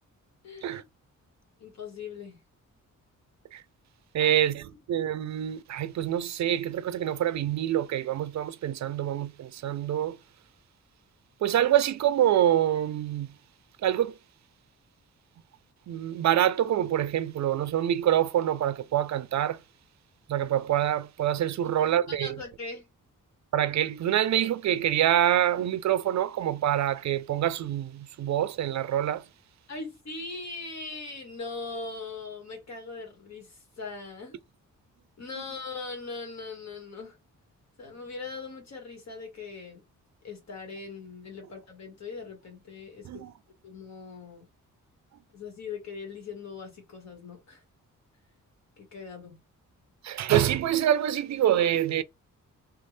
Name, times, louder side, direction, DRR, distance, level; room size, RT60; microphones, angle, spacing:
voice 1, 0.4-0.8 1.6-2.4 4.2-4.4 21.8-22.9 29.7-34.4 35.2-37.2 37.8-39.8 40.2-43.2 43.6-44.4 45.3-47.6 48.8-49.4, left 4 dB, 55° left, 2.0 m, -40 dB
voice 2, 4.1-10.2 11.4-13.3 13.8-14.2 15.9-19.6 20.3-22.4 23.5-29.2 43.0-43.3 50.0-52.0, right 11 dB, 60° right, 0.4 m, -26 dB
3.4 x 2.6 x 3.3 m
cardioid pair, 110°, 32 cm